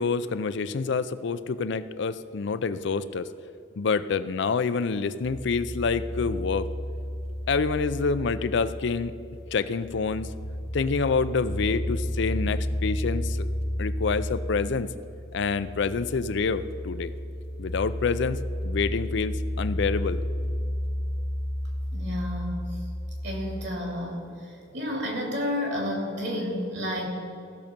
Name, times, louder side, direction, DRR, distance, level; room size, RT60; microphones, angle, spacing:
voice 1, 0.0-3.3 3.8-6.7 7.5-9.1 9.5-10.3 10.7-13.5 13.8-14.9 15.3-17.1 17.6-20.2, left 4 dB, 65° left, 14 dB, 0.4 m, -27 dB
sound 1, 5.2-23.7, equal, 30° left, 0.7 m, -32 dB
voice 2, 21.9-22.7 23.2-24.3 24.7-27.1, left 1 dB, 60° right, 0 dB, 3.0 m, -30 dB
15.5 x 6.6 x 5.2 m, 2.7 s
head